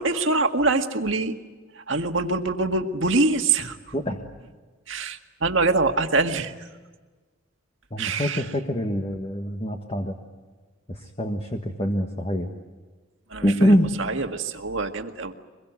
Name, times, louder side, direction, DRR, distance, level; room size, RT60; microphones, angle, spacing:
voice 1, 0.0-1.4 1.7-3.8 4.9-6.7 8.0-8.5 13.3-15.3, right 3 dB, 65° right, 5 dB, 1.9 m, -24 dB
voice 2, 7.9-10.2 10.9-12.5 13.4-14.0, equal, 30° left, 2 dB, 1.6 m, -24 dB
24.5 x 22.0 x 9.3 m, 1.3 s
head